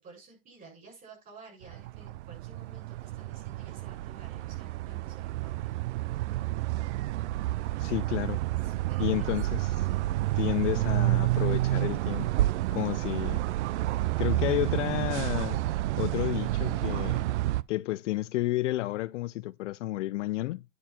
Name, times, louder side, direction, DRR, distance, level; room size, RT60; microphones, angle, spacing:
voice 1, 0.0-5.7 7.7-8.3 8.6-10.0, right 3 dB, 20° right, 6.8 m, -53 dB
sound 1, 1.6-17.6, right 16 dB, 60° right, 0.5 m, -29 dB
voice 2, 7.8-8.4 9.0-9.9 10.4-12.3 12.7-13.4 14.2-15.6 16.0-17.3 17.7-20.6, left 17 dB, 65° left, 0.5 m, -31 dB
10.0 x 4.7 x 5.6 m
supercardioid pair, 145°, 40 cm